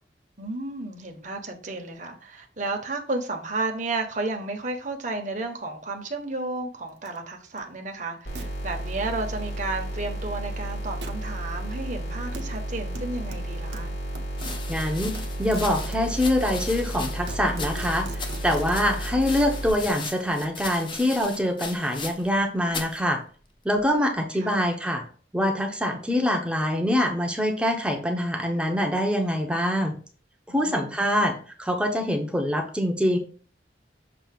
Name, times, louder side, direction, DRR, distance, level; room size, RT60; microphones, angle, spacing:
voice 1, 0.4-13.9 24.4-24.7 30.5-31.0, right 2 dB, 45° right, 1.1 m, -32 dB
sound 1, 7.1-7.2 7.6-7.7 8.4-8.5 11.0-11.2 12.3-12.4 13.0-14.6 15.1-16.1 16.7-16.8 17.1-18.8, right 2 dB, 70° right, 1.0 m, -41 dB
sound 2, 8.3-19.7, right 1 dB, 70° left, 2.6 m, -33 dB
sound 3, 14.4-22.4 22.7-23.0 23.8-24.2, left 4 dB, 25° left, 0.7 m, -38 dB
voice 2, 14.7-23.2 23.6-25.0 25.3-29.9 30.5-33.2, equal, 5° right, 0.8 m, -25 dB
6.9 x 2.8 x 5.8 m
head